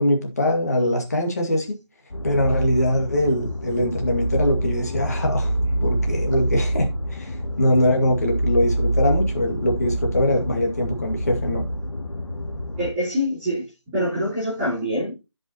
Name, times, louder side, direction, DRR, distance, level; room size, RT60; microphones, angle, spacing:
voice 1, 0.0-1.8 2.2-5.5 5.8-11.6, left 1 dB, 35° left, 2.1 m, -22 dB
sound 1, 2.1-12.9, right 1 dB, 70° left, 1.8 m, -26 dB
voice 2, 12.8-15.2, equal, 5° right, 3.0 m, -25 dB
15.5 x 5.5 x 2.9 m
figure-of-eight pair, 170°, 15 cm